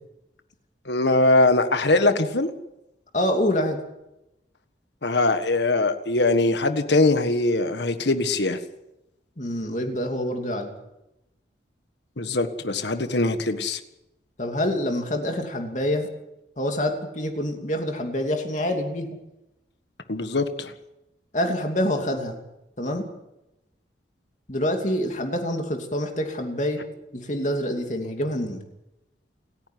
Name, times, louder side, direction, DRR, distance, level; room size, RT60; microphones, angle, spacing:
voice 1, 0.8-2.5 5.0-8.6 12.2-13.8 20.1-20.7, left 2 dB, 70° left, 9 dB, 1.5 m, -22 dB
voice 2, 3.1-3.8 9.4-10.7 14.4-16.1 16.6-19.2 21.3-22.4 22.8-23.0 24.5-26.8 27.1-28.6, left 1 dB, 40° left, 3 dB, 2.8 m, -26 dB
28.5 x 10.0 x 9.5 m, 0.90 s
head